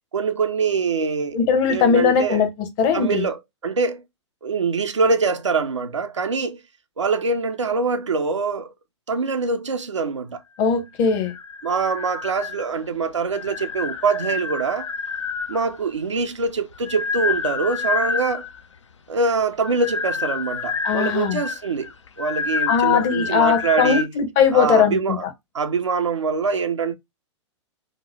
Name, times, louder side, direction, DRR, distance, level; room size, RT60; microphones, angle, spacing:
voice 1, 0.1-1.4 1.7-2.4 2.9-4.0 4.4-6.6 7.0-8.7 9.1-10.4 11.6-14.9 15.5-18.5 19.1-21.9 22.2-24.1 24.5-25.2 25.5-27.0, right 4 dB, 80° right, 0.4 m, -24 dB
voice 2, 1.3-3.3 10.6-11.3 20.8-21.4 22.7-25.3, left 6 dB, 35° left, 0.7 m, -19 dB
sound 1, 11.1-12.8 13.3-15.8 16.5-18.6 19.5-24.1, left 5 dB, 75° left, 0.4 m, -28 dB
2.8 x 2.1 x 4.0 m
figure-of-eight pair, 105°, 15 cm